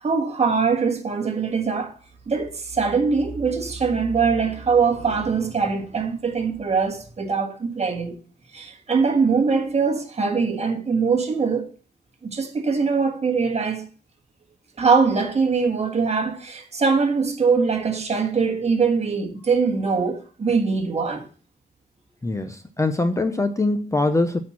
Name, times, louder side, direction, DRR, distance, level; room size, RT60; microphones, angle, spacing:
voice 1, 0.0-1.9 2.3-8.2 8.5-11.7 12.2-13.8 14.8-21.3, right 5 dB, 35° right, 1.5 m, -22 dB
voice 2, 22.2-24.4, left 2 dB, 15° left, 0.6 m, -23 dB
9.1 x 4.4 x 7.2 m
wide cardioid pair, 150°, 18 cm